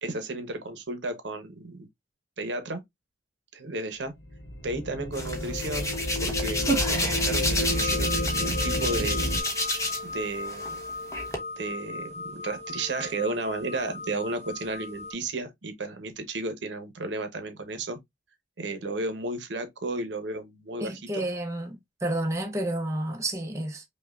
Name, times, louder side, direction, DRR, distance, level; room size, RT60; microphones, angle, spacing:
voice 1, 0.0-1.9 2.4-2.8 3.5-4.1 4.6-5.9 6.2-9.3 10.0-10.8 11.6-18.0 18.6-21.3, right 2 dB, 80° right, 0.8 m, -33 dB
sound 1, 4.2-9.4, equal, 70° left, 0.9 m, -30 dB
Hands, 5.1-10.1 10.5-11.4, left 1 dB, 15° left, 0.9 m, -29 dB
sound 2, 7.7-15.1, left 3 dB, 35° left, 0.4 m, -37 dB
voice 2, 20.8-23.8, right 1 dB, 15° right, 0.7 m, -30 dB
5.3 x 2.2 x 2.4 m
head